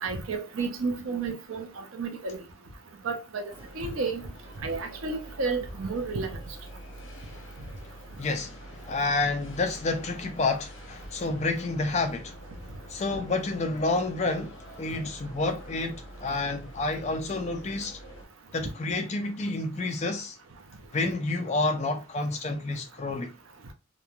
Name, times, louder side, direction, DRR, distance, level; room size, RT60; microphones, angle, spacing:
voice 1, 0.0-2.4 3.0-4.3 4.6-6.4, right 4 dB, 80° right, 0.6 m, -32 dB
sound 1, 3.5-18.3, equal, 70° left, 1.0 m, -46 dB
voice 2, 8.2-8.6 8.8-12.3 12.9-18.0 18.5-20.4 20.9-23.3, left 3 dB, 35° left, 0.3 m, -29 dB
3.0 x 2.1 x 2.4 m
head